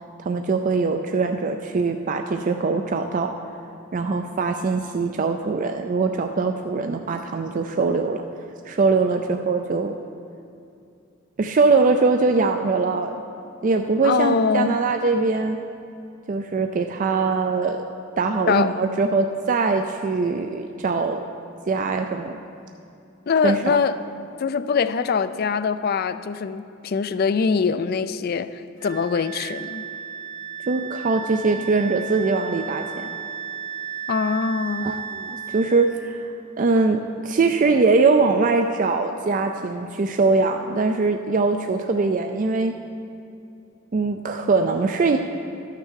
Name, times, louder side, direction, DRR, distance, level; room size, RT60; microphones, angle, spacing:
voice 1, 0.2-3.3 3.9-8.2 8.7-10.0 11.4-13.2 13.6-15.6 16.3-17.9 18.2-21.2 21.7-22.4 23.4-23.8 30.6-33.1 34.8-36.2 36.6-42.7 43.9-45.2, right 4 dB, 40° right, 5 dB, 0.4 m, -22 dB
voice 2, 14.0-14.8 18.5-18.8 23.3-24.0 24.4-29.9 34.1-35.0, left 5 dB, 50° left, 12 dB, 0.4 m, -23 dB
Wind instrument woodwind instrument, 28.8-35.9, right 8 dB, 65° left, 1.4 m, -34 dB
12.0 x 6.6 x 6.4 m, 2.6 s
head